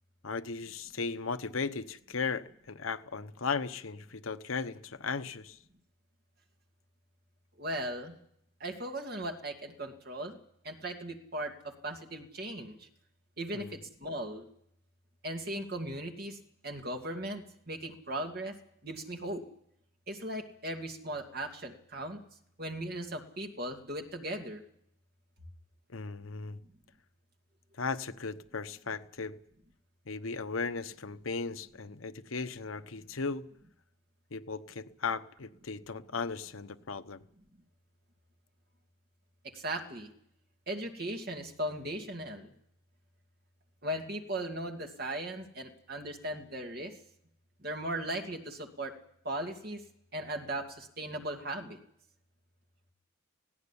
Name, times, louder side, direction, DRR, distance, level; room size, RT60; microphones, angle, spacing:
voice 1, 0.2-5.6 13.5-13.8 25.9-26.6 27.8-29.4 30.1-33.5 34.3-37.2, left 4 dB, 75° left, 1.0 m, -36 dB
voice 2, 7.6-8.2 8.6-10.4 10.6-12.9 13.4-14.4 15.2-18.5 18.8-19.4 20.1-22.2 22.6-24.6 39.4-40.1 40.7-42.5 43.8-47.0 47.6-49.0 49.2-49.8 50.1-51.8, right 1 dB, 45° right, 2.5 m, -38 dB
18.5 x 16.5 x 10.0 m
head